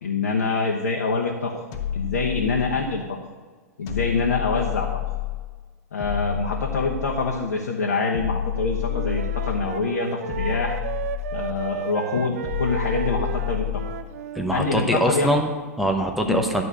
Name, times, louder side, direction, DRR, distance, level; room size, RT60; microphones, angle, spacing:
voice 1, 0.0-1.5 1.9-3.0 3.8-4.9 5.9-10.8 11.3-13.8 14.5-15.3 16.2-16.4, left 4 dB, 70° left, 0 dB, 1.1 m, -25 dB
sound 1, 1.7-3.0 3.9-5.5 6.0-7.4 8.1-9.8 10.3-11.7 12.4-14.0, left 12 dB, 40° left, 1.2 m, -29 dB
Wind instrument woodwind instrument, 8.9-14.5, right 8 dB, 65° right, 0.5 m, -33 dB
voice 2, 14.3-16.6, equal, ahead, 3 dB, 1.0 m, -23 dB
11.5 x 4.1 x 6.6 m, 1.4 s
figure-of-eight pair, 100°, 9 cm